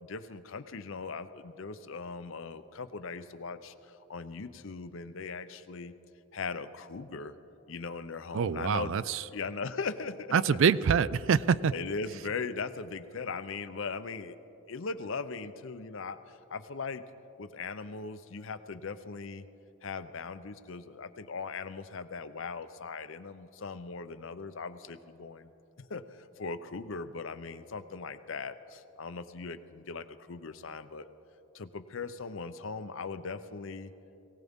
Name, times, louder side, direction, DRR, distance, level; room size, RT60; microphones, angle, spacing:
voice 1, 0.0-5.9 6.3-7.4 7.7-10.6 11.7-14.4 14.7-17.0 17.4-19.5 19.8-25.5 25.8-31.1 31.5-33.9, left 4 dB, 60° left, 12 dB, 0.6 m, -39 dB
voice 2, 8.3-9.2 10.3-11.7, right 6 dB, 60° right, 18 dB, 0.3 m, -25 dB
22.5 x 17.0 x 3.6 m, 3.0 s
head